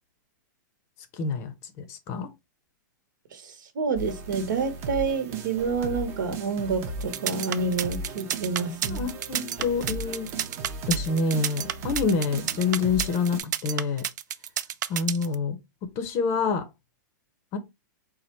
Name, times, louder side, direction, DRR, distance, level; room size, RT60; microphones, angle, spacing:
voice 1, 1.1-2.3 8.9-10.3 10.9-14.0 14.9-15.6 16.0-16.7 17.5-17.6, left 4 dB, 25° left, 0.6 m, -27 dB
voice 2, 3.3-9.1, right 4 dB, 85° right, 1.3 m, -28 dB
sound 1, 4.0-13.4, right 2 dB, 25° right, 0.6 m, -37 dB
sound 2, 7.0-15.3, right 10 dB, 70° right, 0.5 m, -30 dB
4.1 x 2.4 x 4.4 m
supercardioid pair, 165°, 10 cm